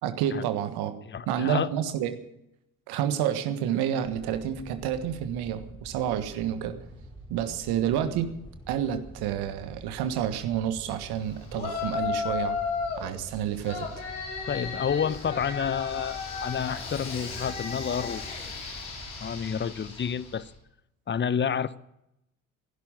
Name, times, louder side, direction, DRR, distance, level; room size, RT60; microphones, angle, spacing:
voice 1, 0.0-0.9 1.3-2.2 2.9-6.8 7.3-8.4 8.7-12.6 13.0-13.9, right 10 dB, 65° right, 1.5 m, -29 dB
voice 2, 1.1-1.7 14.5-18.3 19.2-20.5 21.1-21.8, left 7 dB, 25° left, 0.8 m, -29 dB
sound 1, 4.0-20.6, right 1 dB, 10° left, 4.1 m, -47 dB
Yell, 11.5-13.1 13.6-20.4, left 5 dB, 80° left, 3.7 m, -34 dB
15.5 x 12.0 x 7.6 m
hypercardioid pair, 50°, 41 cm